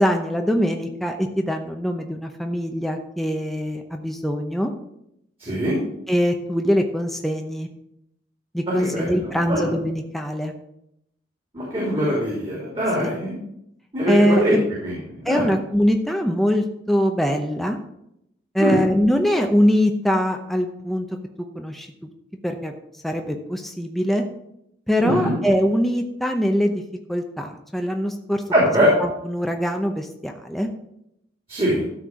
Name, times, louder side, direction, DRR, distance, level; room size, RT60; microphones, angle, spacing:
voice 1, 0.0-4.7 6.1-7.7 8.5-10.5 13.0-13.1 14.1-14.6 15.2-17.8 18.5-21.1 21.5-21.9 22.4-22.7 23.0-24.2 24.9-26.8 27.1-28.4 29.0-30.7, equal, ahead, 3 dB, 0.7 m, -22 dB
voice 2, 5.4-5.8 8.8-9.7 11.5-13.3 13.9-14.6 14.8-15.5 18.6-18.8 25.0-25.3 28.5-28.9 31.5-31.8, equal, 30° right, -5 dB, 2.9 m, -22 dB
12.5 x 4.4 x 6.3 m, 0.79 s
head